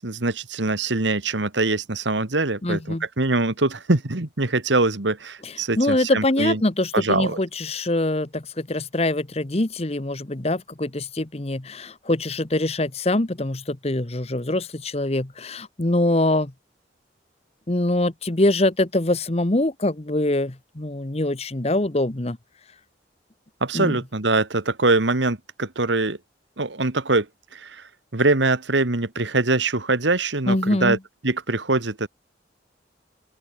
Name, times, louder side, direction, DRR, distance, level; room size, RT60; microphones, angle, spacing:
voice 1, 0.0-6.6 6.9-7.4 23.6-26.2 26.6-27.3 27.5-27.8 28.1-31.0 31.2-32.1, right 2 dB, 75° right, 1.8 m, -23 dB
voice 2, 2.6-3.0 5.4-16.5 17.7-22.4 23.7-24.0 30.5-31.0, left 1 dB, 35° left, 1.1 m, -24 dB
open air
head